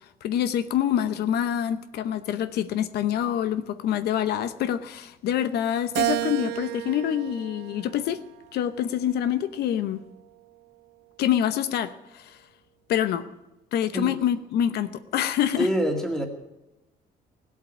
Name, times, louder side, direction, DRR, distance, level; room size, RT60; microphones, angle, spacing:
voice 1, 0.2-8.2 8.5-10.0 11.2-12.4 12.9-13.2 13.7-15.7, left 10 dB, 75° left, 12 dB, 0.8 m, -26 dB
Keyboard (musical), 6.0-8.4 9.0-10.3, right 16 dB, 75° right, 0.5 m, -32 dB
voice 2, 15.6-16.3, equal, 5° left, 3 dB, 2.0 m, -25 dB
18.0 x 8.4 x 8.6 m, 0.98 s
cardioid pair, 165°, 17 cm